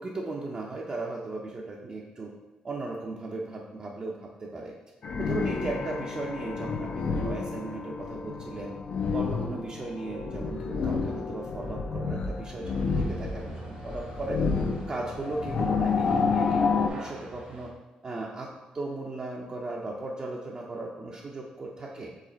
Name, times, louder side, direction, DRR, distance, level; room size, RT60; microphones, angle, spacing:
voice 1, 0.0-2.3 2.6-4.7 5.2-8.8 9.1-14.4 14.9-17.7 18.0-22.1, right 2 dB, 35° right, -1 dB, 0.5 m, -36 dB
sound 1, 5.0-16.9, left 5 dB, 55° left, 0.4 m, -30 dB
sound 2, 12.6-17.7, right 4 dB, 60° right, 1.0 m, -45 dB
4.8 x 2.4 x 4.3 m, 1.0 s
cardioid pair, 115°, 2 cm